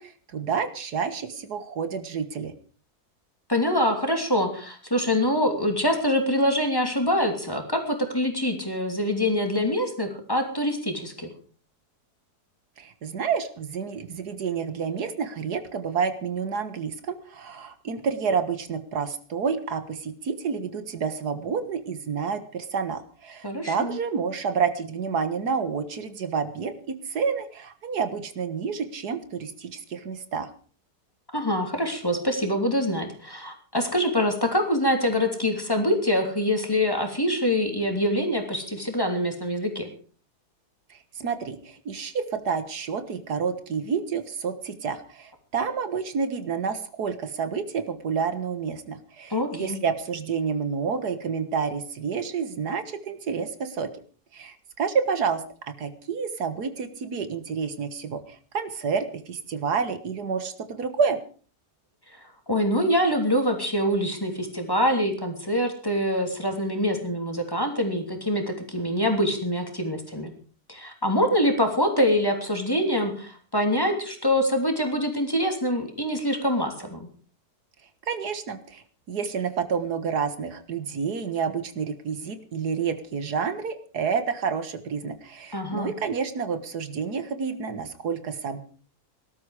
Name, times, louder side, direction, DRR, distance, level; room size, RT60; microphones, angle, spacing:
voice 1, 0.0-2.5 12.8-30.5 40.9-53.9 54.3-55.4 55.8-61.2 78.1-88.6, right 6 dB, 80° right, 10 dB, 2.0 m, -29 dB
voice 2, 3.5-11.3 23.4-24.0 31.3-39.9 49.3-49.8 62.5-70.3 70.7-77.1 85.5-85.9, equal, 15° left, 4 dB, 3.0 m, -25 dB
19.0 x 12.5 x 4.9 m, 0.41 s
omnidirectional pair, 1.7 m